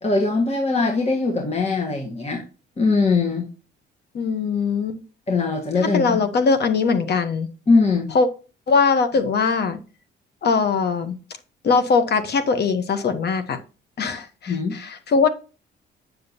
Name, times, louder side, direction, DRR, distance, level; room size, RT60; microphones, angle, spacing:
voice 1, 0.0-2.4 2.8-3.5 5.3-6.2 7.7-8.1 14.5-14.7, left 3 dB, 30° left, 1.6 m, -21 dB
voice 2, 4.1-5.0 5.8-7.5 8.1-8.3 8.7-9.8 10.4-11.1 11.6-13.6 14.0-15.3, left 5 dB, 55° left, 1.0 m, -21 dB
7.9 x 6.5 x 2.8 m
cardioid pair, 90°, 20 cm